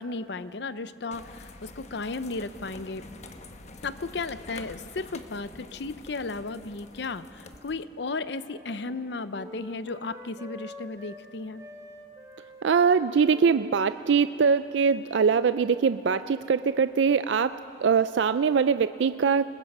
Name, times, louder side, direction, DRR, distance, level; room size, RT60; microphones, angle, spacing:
voice 1, 0.0-3.0 3.8-11.6, left 3 dB, 65° left, 14 dB, 0.7 m, -34 dB
sound 1, 1.1-7.8, left 2 dB, 40° left, 1.1 m, -46 dB
Wind instrument woodwind instrument, 7.3-11.3 11.6-16.1, left 1 dB, 20° right, 1.6 m, -48 dB
voice 2, 12.6-19.5, right 6 dB, 80° right, 13 dB, 0.4 m, -23 dB
27.5 x 20.5 x 5.5 m, 2.8 s
head